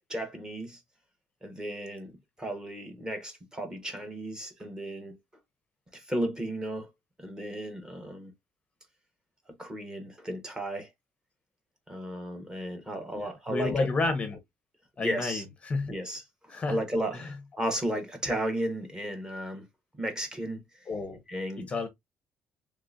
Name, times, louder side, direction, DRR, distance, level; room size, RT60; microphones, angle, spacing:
voice 1, 0.1-0.8 1.4-2.1 2.4-5.2 5.9-6.9 7.2-8.3 9.6-10.9 11.9-13.9 15.0-15.4 15.9-19.7 20.0-20.9 21.3-21.9, right 1 dB, 10° right, 0.9 m, -34 dB
voice 2, 13.1-14.4 15.0-16.0 16.5-16.8 17.1-17.3 20.9-21.2 21.7-21.9, left 3 dB, 25° left, 0.6 m, -31 dB
3.7 x 3.1 x 2.4 m
cardioid pair, 155°, 5 cm